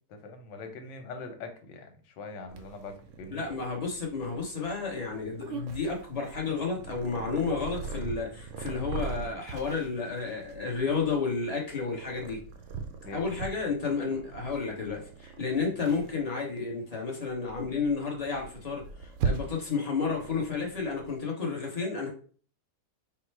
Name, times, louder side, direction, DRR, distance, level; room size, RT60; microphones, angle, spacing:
voice 1, 0.1-3.4 13.0-13.3, left 3 dB, 90° left, 5 dB, 1.5 m, -43 dB
Purr, 2.5-21.2, right 5 dB, 80° right, 0.6 m, -40 dB
voice 2, 3.3-12.4 13.1-22.1, left 4 dB, 30° left, -1 dB, 0.8 m, -31 dB
4.3 x 2.1 x 4.5 m, 0.42 s
omnidirectional pair, 1.9 m